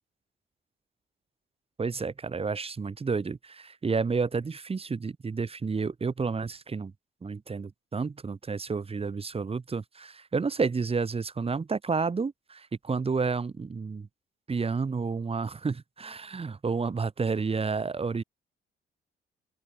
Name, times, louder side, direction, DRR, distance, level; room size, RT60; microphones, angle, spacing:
voice 1, 1.8-6.9 7.2-14.1 14.5-18.2, right 4 dB, 30° right, 1.7 m, -30 dB
open air
cardioid pair, 90°, 20 cm